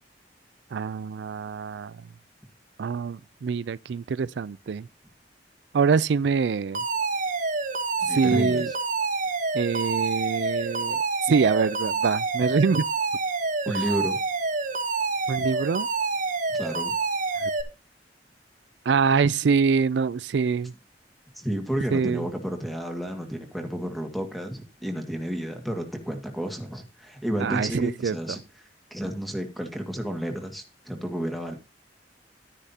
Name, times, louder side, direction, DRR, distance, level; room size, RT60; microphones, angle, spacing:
voice 1, 0.7-1.9 2.8-4.9 5.7-6.8 8.1-8.7 9.5-12.8 15.3-15.9 18.9-20.7 21.9-22.2 27.4-28.2, right 5 dB, 75° right, 0.4 m, -24 dB
Alarm, 6.7-17.6, right 3 dB, 50° right, 1.4 m, -27 dB
voice 2, 8.0-8.7 13.7-14.2 16.5-16.9 21.4-28.4 28.9-31.6, equal, ahead, 1.9 m, -31 dB
12.0 x 9.9 x 2.8 m
head